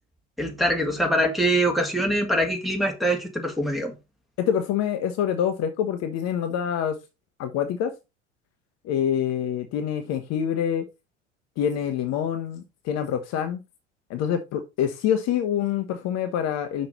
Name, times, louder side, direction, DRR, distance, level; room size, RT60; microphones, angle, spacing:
voice 1, 0.4-3.9, right 1 dB, ahead, 1.8 m, -23 dB
voice 2, 4.4-7.0 7.4-8.0 8.8-10.8 11.6-13.6 14.1-16.9, left 9 dB, 45° left, 0.9 m, -26 dB
5.8 x 5.3 x 4.1 m
figure-of-eight pair, 70°, 36 cm